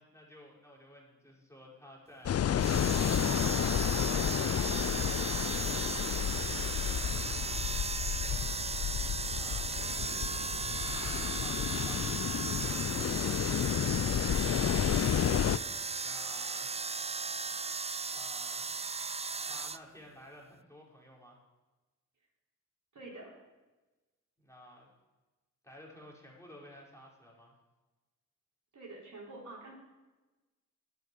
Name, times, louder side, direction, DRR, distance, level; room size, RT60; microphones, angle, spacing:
voice 1, 0.0-3.2 7.7-9.0 9.3-16.7 18.1-18.7 19.4-21.4 24.4-24.9 25.6-27.5, equal, 10° left, -3 dB, 5.3 m, -54 dB
sound 1, 2.3-15.6, left 10 dB, 45° left, 0.5 m, -31 dB
sound 2, 2.5-19.8, right 4 dB, 20° right, 0.4 m, -36 dB
voice 2, 6.7-7.1 22.9-23.3 28.7-29.7, right 2 dB, 55° right, -5 dB, 4.3 m, -48 dB
10.5 x 8.3 x 8.0 m, 1.1 s
supercardioid pair, 45°, 35 cm